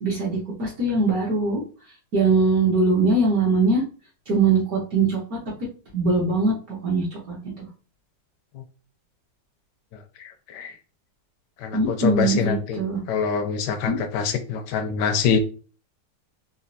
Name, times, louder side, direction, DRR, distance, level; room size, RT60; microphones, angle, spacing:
voice 1, 0.0-1.6 2.1-3.8 4.3-5.4 5.9-7.7 11.7-13.0 13.9-14.0, right 3 dB, 55° right, -6 dB, 1.3 m, -22 dB
voice 2, 10.2-10.8 11.6-12.8 13.1-15.4, left 6 dB, 75° left, 7 dB, 1.1 m, -25 dB
4.2 x 2.4 x 2.6 m, 0.37 s
omnidirectional pair, 2.0 m